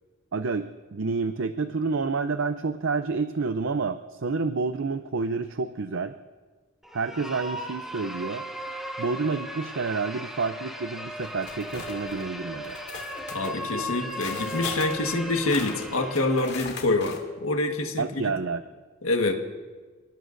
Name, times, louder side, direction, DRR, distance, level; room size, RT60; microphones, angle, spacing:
voice 1, 0.3-6.1 6.9-8.4 9.0-12.8 18.0-18.6, right 4 dB, 65° right, 10 dB, 0.6 m, -29 dB
sound 1, 6.8-16.7, equal, ahead, 1.6 m, -37 dB
sound 2, 11.2-12.3 12.6-17.2, left 4 dB, 55° left, 2.3 m, -40 dB
voice 2, 13.3-18.1 19.0-19.3, left 2 dB, 85° left, 3 dB, 1.6 m, -26 dB
29.0 x 19.0 x 2.6 m, 1.4 s
head